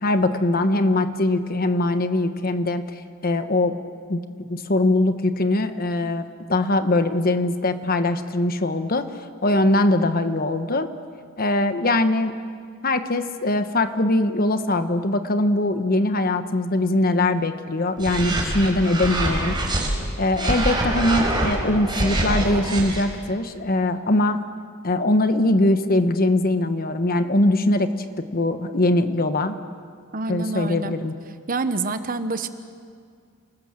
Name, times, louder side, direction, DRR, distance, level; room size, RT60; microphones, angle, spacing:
voice 1, 0.0-2.8 3.2-3.7 4.1-4.2 4.5-9.1 9.4-10.9 11.4-12.3 12.8-19.6 20.2-24.4 24.8-27.9 28.3-29.6 30.3-31.1, left 2 dB, 45° left, 9 dB, 1.2 m, -21 dB
sound 1, 18.0-19.9 20.3-23.0, right 1 dB, 20° right, 4.6 m, -24 dB
voice 2, 30.1-30.9 31.5-32.5, right 3 dB, 40° right, 10 dB, 1.1 m, -27 dB
28.5 x 20.0 x 7.6 m, 2.1 s
head